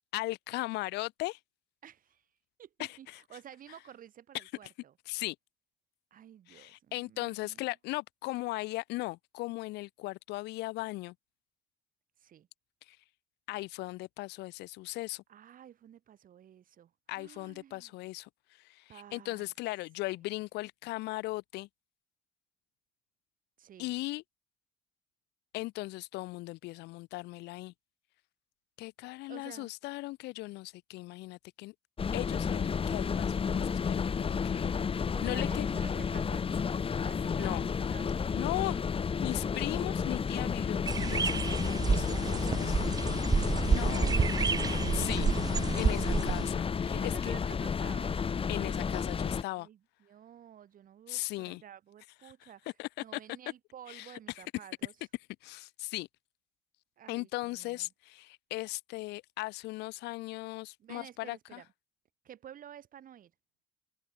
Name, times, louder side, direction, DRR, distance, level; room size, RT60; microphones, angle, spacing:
voice 1, 0.1-1.4 2.8-3.2 4.3-4.7 5.1-5.4 6.5-11.1 12.9-13.0 13.5-15.2 17.1-18.3 18.6-21.7 23.8-24.2 25.5-27.7 28.8-31.7 32.1-34.7 35.2-35.6 37.4-37.7 38.3-38.8 39.2-42.7 43.3-44.1 44.9-45.3 45.8-47.3 48.5-49.7 51.1-51.6 52.2-52.3 52.8-53.2 53.9-54.4 55.4-56.1 57.1-61.6, left 20 dB, 85° left, 0.9 m, -38 dB
voice 2, 1.8-2.2 2.6-4.9 6.1-7.6 12.2-12.5 14.9-15.0 15.3-17.9 18.9-19.4 23.6-23.9 29.0-29.7 35.1-37.6 37.9-38.6 43.9-45.5 45.8-46.6 46.9-48.2 49.5-52.6 53.0-54.9 57.0-57.9 60.8-61.7 62.2-63.3, right 10 dB, 55° right, 7.8 m, -51 dB
sound 1, 32.0-49.4, left 6 dB, 35° left, 2.2 m, -32 dB
sound 2, 40.9-46.5, right 5 dB, 20° right, 0.6 m, -30 dB
cardioid pair, 110°, 17 cm